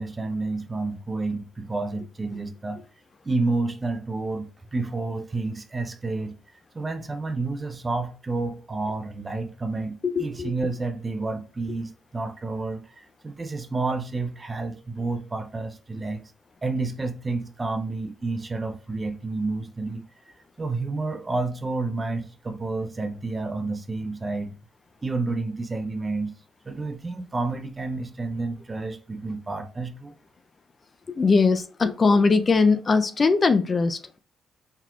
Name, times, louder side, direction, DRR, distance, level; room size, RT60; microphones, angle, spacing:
voice 1, 0.0-2.8 3.2-6.3 6.7-16.2 16.6-20.0 20.6-24.6 25.0-26.3 26.7-30.2, right 3 dB, 25° right, 0.5 m, -30 dB
voice 2, 10.0-10.5 31.2-34.2, left 4 dB, 35° left, 0.4 m, -20 dB
4.4 x 3.9 x 2.3 m
cardioid pair, 90°, 0 cm